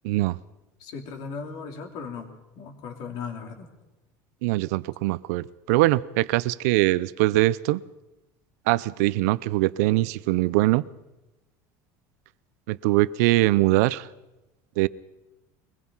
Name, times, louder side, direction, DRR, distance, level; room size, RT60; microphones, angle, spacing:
voice 1, 0.0-0.4 4.4-7.8 8.7-10.8 12.7-14.1 14.8-14.9, right 18 dB, 85° right, 0.7 m, -22 dB
voice 2, 0.8-3.7, left 5 dB, 50° left, 3.4 m, -37 dB
23.0 x 21.0 x 5.6 m
cardioid pair, 165°, 9 cm